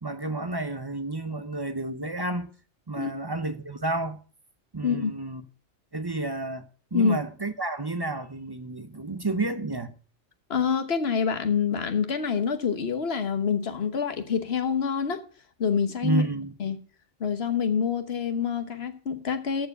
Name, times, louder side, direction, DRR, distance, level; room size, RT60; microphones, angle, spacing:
voice 1, 0.0-2.5 2.9-4.2 4.7-5.4 5.9-9.9 16.0-16.5, right 2 dB, 25° right, 0.5 m, -30 dB
voice 2, 4.8-5.1 6.9-7.2 10.5-15.2 15.6-16.2 16.6-16.8 17.2-19.7, left 6 dB, 60° left, 1.4 m, -26 dB
14.0 x 4.7 x 7.8 m
omnidirectional pair, 1.2 m